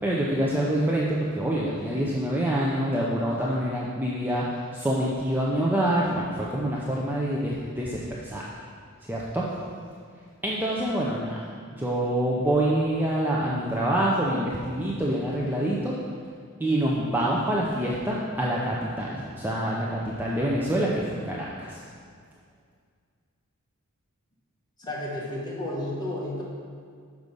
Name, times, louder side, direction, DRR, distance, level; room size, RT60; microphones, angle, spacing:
voice 1, 0.0-8.5 9.1-9.5 10.4-11.5 11.8-15.9 16.6-21.8, right 1 dB, 10° right, -5 dB, 0.5 m, -26 dB
voice 2, 24.8-26.4, left 1 dB, 20° left, -5 dB, 1.4 m, -32 dB
6.6 x 4.8 x 5.3 m, 2.1 s
head